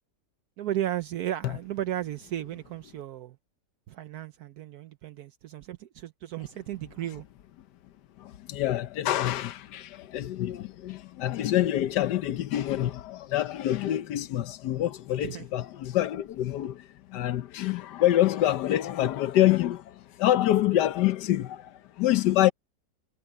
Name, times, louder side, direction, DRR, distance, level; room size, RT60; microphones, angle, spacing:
voice 1, 0.6-3.4 3.9-7.2 15.2-15.4, right 12 dB, 70° right, 1.2 m, -34 dB
voice 2, 8.2-22.5, left 13 dB, 90° left, 1.4 m, -26 dB
omnidirectional pair, 1.8 m